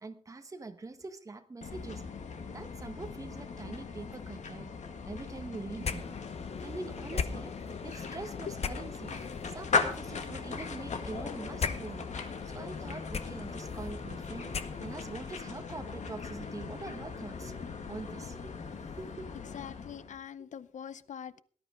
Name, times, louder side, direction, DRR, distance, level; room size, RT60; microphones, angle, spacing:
voice 1, 0.0-2.0 2.5-4.7 5.0-6.2 6.6-7.6 7.8-9.2 9.5-19.5, right 3 dB, 25° right, 1.3 m, -44 dB
sound 1, 1.6-20.2, left 4 dB, 75° left, 2.1 m, -39 dB
sound 2, 5.8-15.2, left 6 dB, 55° left, 1.0 m, -40 dB
voice 2, 19.5-21.4, left 8 dB, 90° left, 0.7 m, -44 dB
18.5 x 12.0 x 3.8 m
wide cardioid pair, 175°, 12 cm